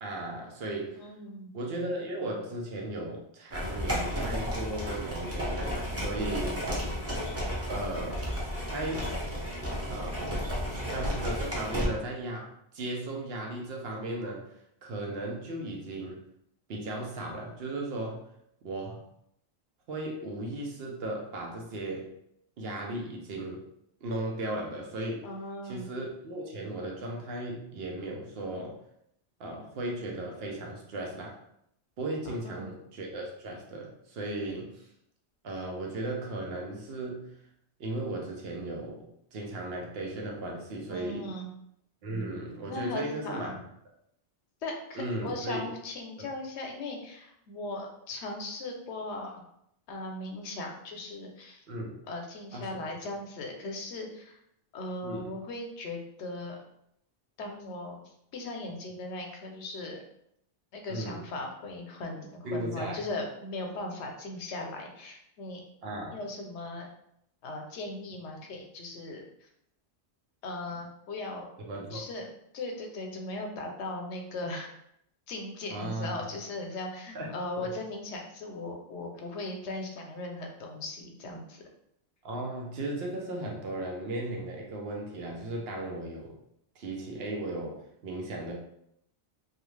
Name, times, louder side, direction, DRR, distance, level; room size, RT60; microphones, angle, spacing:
voice 1, 0.0-1.0 1.5-6.6 7.7-8.3 8.7-9.2 9.9-10.3 10.7-14.4 14.8-16.2 16.7-18.2 18.6-19.0 19.9-22.1 22.6-23.6 24.0-25.3 25.6-28.8 29.4-31.4 32.0-34.9 35.4-37.3 37.8-41.3 42.0-43.6 44.9-45.7 46.2-46.3 51.7-51.9 52.5-52.8 55.0-55.3 60.9-61.2 62.4-63.0 65.8-66.2 71.7-72.0 75.7-76.3 77.1-77.3 77.6-77.7 82.2-86.4 86.8-87.8 88.0-88.5, right 1 dB, 65° right, -1 dB, 0.8 m, -36 dB
voice 2, 1.0-1.5 25.2-25.9 32.3-32.7 40.9-41.5 42.7-43.5 44.6-49.4 49.9-51.6 52.1-54.4 54.7-56.6 57.4-60.0 60.7-65.6 66.1-66.9 67.4-69.5 70.4-71.5 71.9-72.3 72.5-74.7 75.3-81.6, left 2 dB, 80° left, 2 dB, 0.9 m, -38 dB
sound 1, 3.5-11.9, equal, 20° right, 0.4 m, -33 dB
2.4 x 2.4 x 3.1 m, 0.74 s
omnidirectional pair, 1.1 m